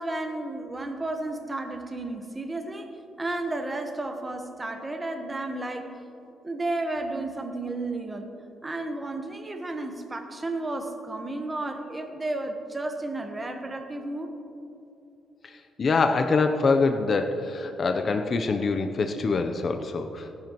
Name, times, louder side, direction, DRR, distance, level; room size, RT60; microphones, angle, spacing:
voice 1, 0.0-2.9 3.2-5.9 6.4-8.3 8.6-14.4, right 2 dB, 20° right, 6 dB, 1.1 m, -32 dB
voice 2, 15.8-20.3, left 4 dB, 45° left, 6 dB, 0.6 m, -24 dB
17.0 x 10.5 x 3.0 m, 2.7 s
cardioid pair, 90°, 0 cm